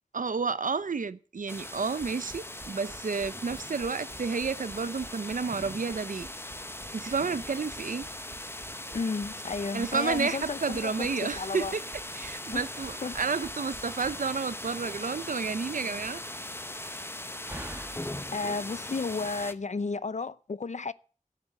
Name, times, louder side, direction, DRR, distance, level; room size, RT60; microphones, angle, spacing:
voice 1, 0.1-6.3 6.9-8.1 9.7-16.2, right 5 dB, 85° right, 0.7 m, -31 dB
sound 1, 1.5-19.5, left 1 dB, 20° left, 0.9 m, -40 dB
sound 2, 1.7-14.3, right 2 dB, 55° right, 3.2 m, -49 dB
voice 2, 8.9-11.7 12.5-12.7 13.0-13.2 18.3-20.9, left 4 dB, 65° left, 0.6 m, -33 dB
Slam, 12.0-19.7, right 1 dB, 15° right, 1.8 m, -51 dB
13.5 x 8.4 x 7.9 m
wide cardioid pair, 60°, 13 cm